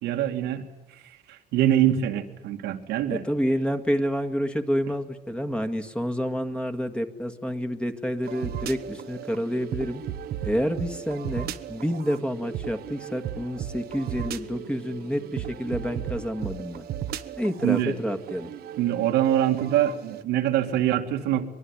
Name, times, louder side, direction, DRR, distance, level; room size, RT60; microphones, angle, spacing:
voice 1, 0.0-0.6 1.3-3.2 17.6-18.0 18.8-21.5, right 11 dB, 85° right, 4 dB, 2.3 m, -24 dB
voice 2, 3.1-10.0 10.4-16.8 17.4-18.5, equal, 5° left, 7 dB, 1.9 m, -28 dB
sound 1, 8.2-20.2, right 10 dB, 70° right, 1.2 m, -36 dB
24.0 x 22.0 x 9.9 m, 1.1 s
cardioid pair, 110°, 17 cm